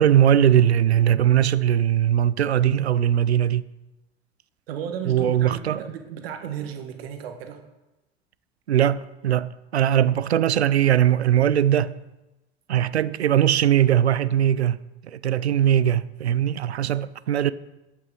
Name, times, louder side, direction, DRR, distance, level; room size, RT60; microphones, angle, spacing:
voice 1, 0.0-3.7 5.1-5.8 8.7-12.0 12.7-14.8 15.0-17.5, right 10 dB, 85° right, 0.5 m, -20 dB
voice 2, 4.7-7.6, right 8 dB, 65° right, 1.5 m, -34 dB
17.5 x 6.0 x 4.8 m
figure-of-eight pair, 75°, 32 cm